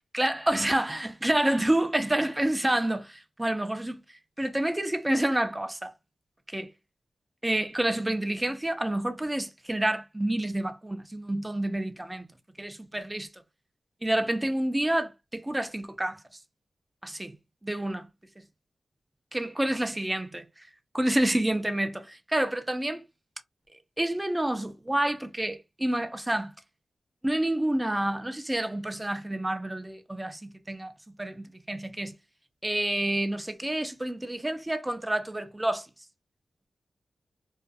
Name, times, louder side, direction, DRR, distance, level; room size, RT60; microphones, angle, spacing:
voice 1, 0.1-4.0 4.4-5.9 6.5-6.7 7.4-12.2 12.6-13.3 14.0-16.2 17.0-17.4 17.6-18.1 19.3-20.4 20.9-23.0 24.0-26.5 27.2-30.9 31.2-32.1 32.6-35.9, right 1 dB, 15° right, 0.5 m, -28 dB
2.6 x 2.4 x 2.3 m
cardioid pair, 60°, 0 cm